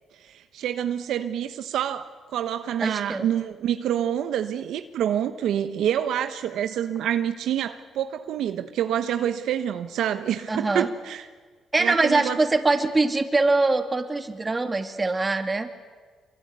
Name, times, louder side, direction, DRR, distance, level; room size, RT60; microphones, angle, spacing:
voice 1, 0.2-11.3 11.8-12.4, right 10 dB, 80° right, 9 dB, 1.1 m, -27 dB
voice 2, 2.8-3.3 10.5-10.9 11.7-15.7, right 3 dB, 25° right, 7 dB, 2.6 m, -23 dB
25.0 x 23.5 x 9.6 m, 1.4 s
cardioid pair, 90°, 0 cm